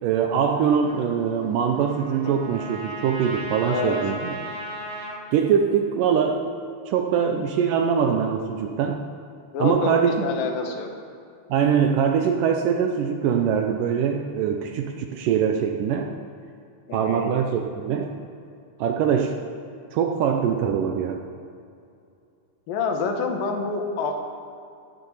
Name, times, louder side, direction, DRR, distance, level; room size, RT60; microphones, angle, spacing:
voice 1, 0.0-4.3 5.3-6.5 6.9-9.1 9.6-10.3 11.5-16.1 16.9-18.2 18.8-19.4 19.9-21.2, right 7 dB, 75° right, 4 dB, 2.2 m, -23 dB
Trumpet, 0.8-5.2, right 1 dB, 55° right, 2.2 m, -36 dB
voice 2, 3.6-4.0 9.5-10.9 16.9-17.3 22.7-24.1, left 4 dB, 75° left, 3 dB, 3.0 m, -27 dB
15.5 x 7.0 x 8.2 m, 2.5 s
omnidirectional pair, 4.2 m